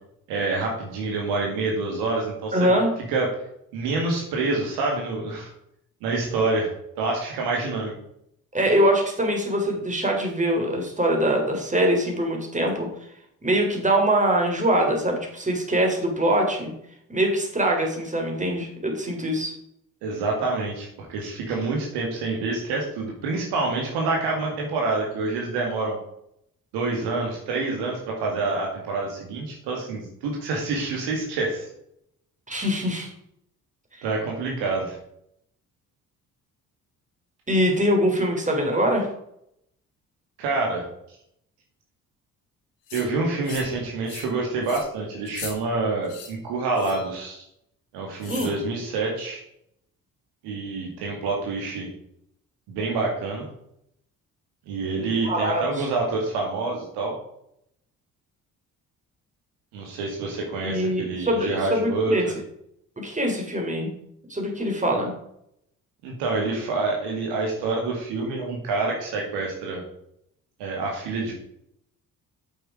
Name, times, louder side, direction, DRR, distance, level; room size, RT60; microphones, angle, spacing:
voice 1, 0.3-2.7 3.1-3.3 3.7-5.5 6.0-7.9 20.0-26.0 26.7-31.7 34.0-35.0 40.4-40.9 42.9-47.4 47.9-49.4 50.4-51.9 52.7-53.5 54.7-57.2 59.7-62.2 66.0-69.8 70.6-71.3, right 3 dB, 60° right, 0 dB, 2.2 m, -27 dB
voice 2, 2.5-2.9 8.5-12.9 13.4-16.7 17.1-19.5 32.5-33.1 37.5-39.1 48.3-48.6 55.2-55.9 60.6-62.2 63.0-64.0 64.3-65.1, right 1 dB, 15° right, 1 dB, 3.7 m, -23 dB
sound 1, 42.9-43.1 43.4-43.8 44.1-44.3 44.6-44.8 45.3-45.5 46.0-46.3 46.8-47.1 48.2-48.5, left 6 dB, 65° left, 2.6 m, -39 dB
8.8 x 7.6 x 4.9 m, 0.75 s
figure-of-eight pair, 45°, 43 cm